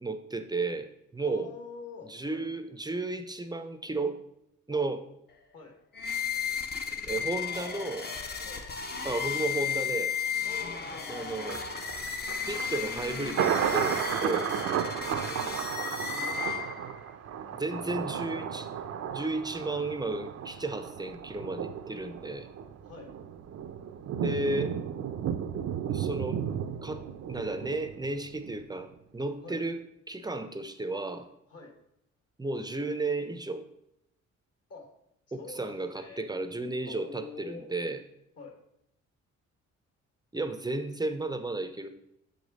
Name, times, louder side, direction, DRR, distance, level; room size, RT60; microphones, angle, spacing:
voice 1, 0.0-1.5 2.0-4.2 4.7-5.0 7.1-8.1 9.0-10.1 11.1-11.6 12.4-14.5 17.6-18.7 19.1-22.5 24.2-24.8 25.9-26.4 26.8-31.3 32.4-33.7 35.3-38.0 40.3-41.9, right 2 dB, 15° right, 9 dB, 0.6 m, -33 dB
voice 2, 1.2-2.5 4.7-4.9 5.5-5.7 8.4-8.7 10.4-11.1 14.3-15.1 15.4-16.6 17.5-18.1 22.8-23.1 29.4-29.6 31.5-31.7 34.7-34.9 35.3-36.3 36.8-37.7 38.4-38.6, left 4 dB, 50° left, 3 dB, 1.7 m, -47 dB
sound 1, 5.9-17.0, left 6 dB, 35° left, 0.8 m, -34 dB
Thunder, 11.4-28.6 28.9-29.0, right 8 dB, 55° right, 0.6 m, -34 dB
7.0 x 5.1 x 4.0 m, 0.79 s
cardioid pair, 90°, 30 cm